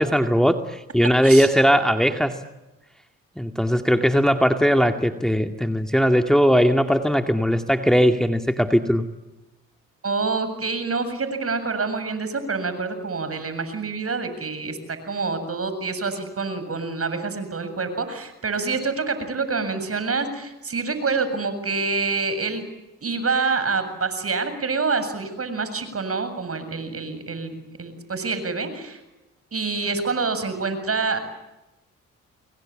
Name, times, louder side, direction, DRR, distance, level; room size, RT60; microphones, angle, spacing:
voice 1, 0.0-2.4 3.4-9.1, equal, ahead, 5 dB, 2.1 m, -19 dB
voice 2, 10.0-22.6 23.0-29.0 29.5-31.2, right 4 dB, 45° right, 10 dB, 7.6 m, -27 dB
30.0 x 22.5 x 8.8 m, 1.0 s
supercardioid pair, 60°, 31 cm